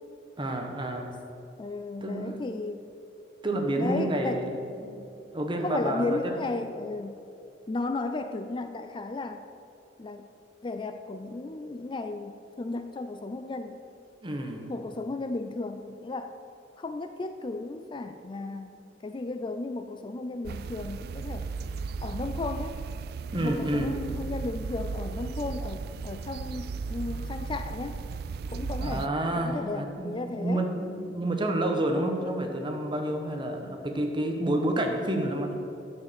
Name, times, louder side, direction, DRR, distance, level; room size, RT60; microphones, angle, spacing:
voice 1, 0.4-1.2 2.0-2.5 3.4-5.0 5.3-6.4 14.2-14.7 18.5-18.6 23.3-23.9 28.8-35.5, right 1 dB, 25° right, 3 dB, 1.1 m, -29 dB
voice 2, 1.6-2.8 3.8-4.5 5.6-7.1 7.7-9.4 10.0-10.3 10.6-13.8 14.7-16.3 16.8-18.7 19.0-21.5 22.0-22.8 23.4-28.0 28.5-29.1 29.4-30.6, left 3 dB, 25° left, 8 dB, 0.4 m, -34 dB
sound 1, 20.4-29.1, right 4 dB, 60° right, 0.3 m, -35 dB
10.5 x 6.5 x 6.8 m, 2.7 s
head